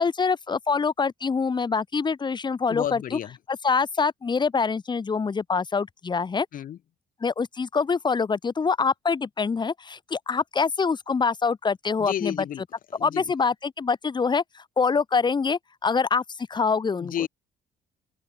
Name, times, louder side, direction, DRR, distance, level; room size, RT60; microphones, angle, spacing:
voice 1, 0.0-3.2 3.5-6.5 7.2-12.4 13.0-17.1, left 5 dB, 25° left, 1.7 m, -25 dB
voice 2, 2.7-3.4 6.5-6.8 12.0-12.6 12.9-13.2 17.0-17.3, left 10 dB, 55° left, 2.2 m, -31 dB
open air
cardioid pair, 110°, 17 cm